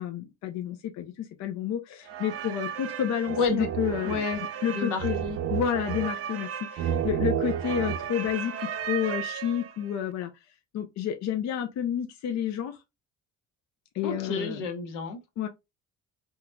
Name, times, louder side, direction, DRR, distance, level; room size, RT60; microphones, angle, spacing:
voice 1, 0.0-4.2 4.6-5.2 5.5-10.3 10.7-12.8 13.9-14.7 15.4-15.5, left 9 dB, 60° left, 0.6 m, -30 dB
sound 1, 2.1-9.9, right 9 dB, 50° right, 0.5 m, -32 dB
voice 2, 3.4-3.7 4.0-4.4 4.7-5.4 14.0-15.2, left 4 dB, 85° left, 1.1 m, -30 dB
3.7 x 2.9 x 2.2 m
cardioid pair, 110°, 31 cm